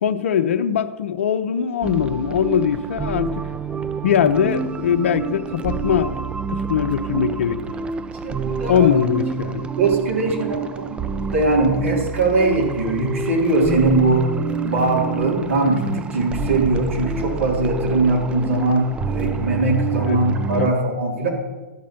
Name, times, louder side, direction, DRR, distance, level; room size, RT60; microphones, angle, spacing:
voice 1, 0.0-3.5 4.0-6.2 6.5-7.6 8.7-9.7 20.0-20.2 20.6-20.7, left 8 dB, 70° left, 0.6 m, -21 dB
sound 1, 1.8-20.7, right 6 dB, 15° right, 0.4 m, -28 dB
voice 2, 8.2-8.9 9.8-14.2 14.6-21.3, right 2 dB, 80° right, 3.1 m, -21 dB
12.5 x 7.2 x 4.4 m
hypercardioid pair, 110°, 7 cm